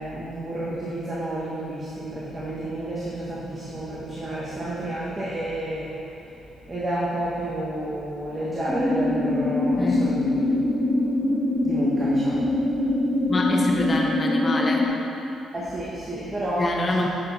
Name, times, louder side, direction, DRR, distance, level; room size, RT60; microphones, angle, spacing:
voice 1, 0.0-5.9 6.7-10.5 11.6-12.5 15.5-16.7, right 1 dB, 25° right, -8 dB, 1.6 m, -30 dB
sound 1, 8.7-14.9, left 2 dB, 15° left, 1.4 m, -23 dB
voice 2, 9.8-10.1 13.3-14.9 16.6-17.1, left 2 dB, 30° left, 0 dB, 0.9 m, -26 dB
8.6 x 6.2 x 4.2 m, 2.8 s
cardioid pair, 90°, 0 cm